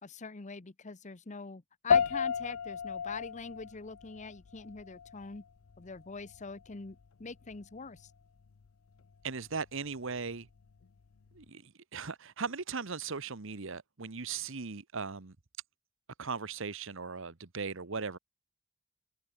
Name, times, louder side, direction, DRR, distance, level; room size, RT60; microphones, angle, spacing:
voice 1, 0.0-5.4 5.8-8.1, left 4 dB, 35° left, 0.8 m, -44 dB
sound 1, 1.9-11.5, left 7 dB, 80° left, 0.5 m, -35 dB
voice 2, 9.2-10.5 11.3-15.4 16.2-18.2, right 5 dB, 65° right, 1.2 m, -38 dB
open air
head